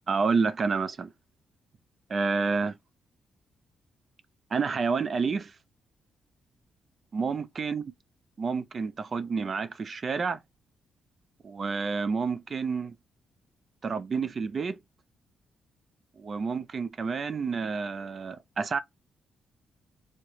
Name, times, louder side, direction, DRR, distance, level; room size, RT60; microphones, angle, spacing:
voice 1, 0.1-1.1 2.1-2.8 4.5-5.5 7.1-7.8 8.4-10.4 11.4-12.9 13.8-14.8 16.2-18.8, right 5 dB, 40° right, 0.4 m, -29 dB
3.0 x 2.1 x 3.7 m
cardioid pair, 105°, 0 cm